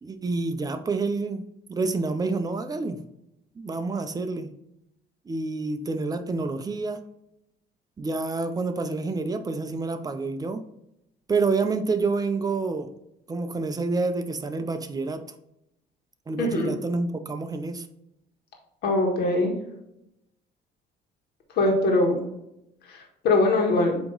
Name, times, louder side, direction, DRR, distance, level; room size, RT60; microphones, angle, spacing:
voice 1, 0.0-3.0 3.6-4.5 5.3-7.0 8.0-10.6 11.3-12.9 13.3-15.2 16.3-17.9, right 3 dB, 20° right, 8 dB, 0.6 m, -28 dB
voice 2, 16.4-16.7 18.8-19.5 21.6-22.2 22.9-24.0, left 2 dB, 75° left, 1 dB, 1.6 m, -22 dB
8.3 x 3.0 x 3.9 m, 0.83 s
cardioid pair, 110°, 17 cm